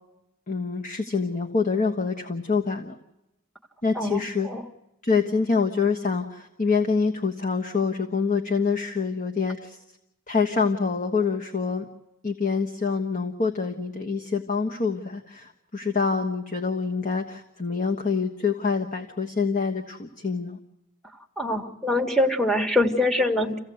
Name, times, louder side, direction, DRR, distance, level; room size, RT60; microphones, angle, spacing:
voice 1, 0.5-2.9 3.8-4.5 5.0-9.8 10.3-11.9 12.2-20.6, left 5 dB, 40° left, 4 dB, 1.3 m, -26 dB
voice 2, 3.9-4.6 21.4-23.6, left 1 dB, ahead, 5 dB, 1.9 m, -24 dB
28.0 x 16.0 x 7.9 m, 0.93 s
head